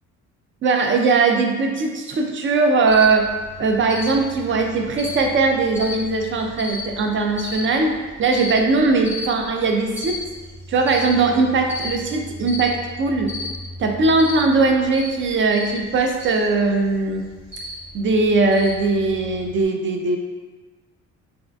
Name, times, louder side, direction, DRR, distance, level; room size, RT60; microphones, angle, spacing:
voice 1, 0.6-3.3 3.6-10.2 10.7-13.4 13.8-17.2 17.9-20.2, right 3 dB, 40° right, 3 dB, 0.4 m, -20 dB
Cricket, 2.9-19.6, left 2 dB, 55° right, 1.4 m, -35 dB
3.5 x 2.5 x 2.2 m, 1.3 s
cardioid pair, 95°, 33 cm